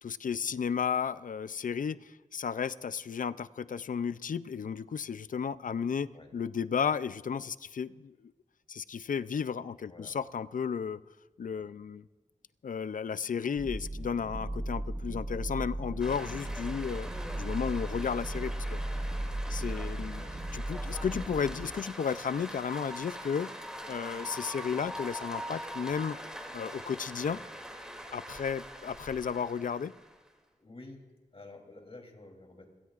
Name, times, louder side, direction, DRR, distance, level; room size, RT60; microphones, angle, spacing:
voice 1, 0.0-8.1 8.7-11.0 11.4-12.0 12.6-17.1 17.4-18.8 19.5-20.2 20.5-23.5 23.9-26.2 26.5-27.4 28.1-29.9, left 6 dB, 80° left, 15 dB, 0.5 m, -33 dB
voice 2, 9.8-10.2 19.7-20.4 30.6-31.1 31.3-32.7, left 2 dB, 45° left, 2 dB, 3.3 m, -51 dB
sound 1, 13.6-21.7, right 1 dB, 35° right, 1.6 m, -36 dB
sound 2, 16.0-30.3, equal, 5° right, 2.7 m, -43 dB
27.5 x 17.5 x 2.5 m, 1.2 s
wide cardioid pair, 60°, 14 cm